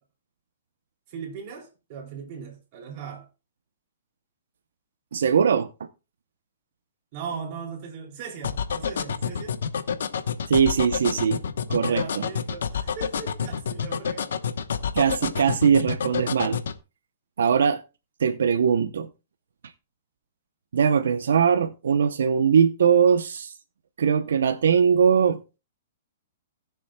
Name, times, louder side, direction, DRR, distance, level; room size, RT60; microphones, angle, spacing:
voice 1, 1.1-3.3 7.1-9.6 11.8-14.4, right 6 dB, 35° right, 2.9 m, -38 dB
voice 2, 5.1-5.7 10.5-11.4 11.7-12.2 14.9-16.6 17.4-17.8 18.2-19.1 20.7-23.5 24.0-25.4, right 7 dB, 80° right, 0.7 m, -21 dB
sound 1, 8.4-16.8, left 7 dB, 80° left, 0.9 m, -28 dB
19.5 x 6.8 x 2.2 m
hypercardioid pair, 160°, 0 cm